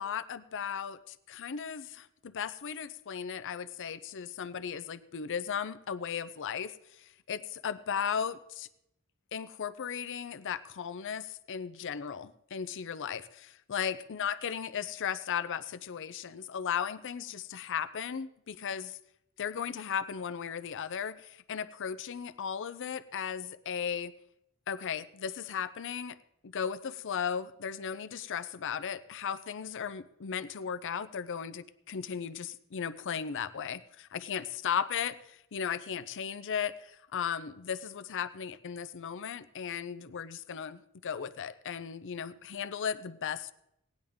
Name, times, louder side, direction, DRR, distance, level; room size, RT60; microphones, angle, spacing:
voice 1, 0.0-8.7 9.3-19.0 19.4-24.1 24.7-26.2 26.4-43.5, left 7 dB, 60° left, 14 dB, 0.6 m, -36 dB
17.5 x 10.5 x 3.5 m, 0.78 s
head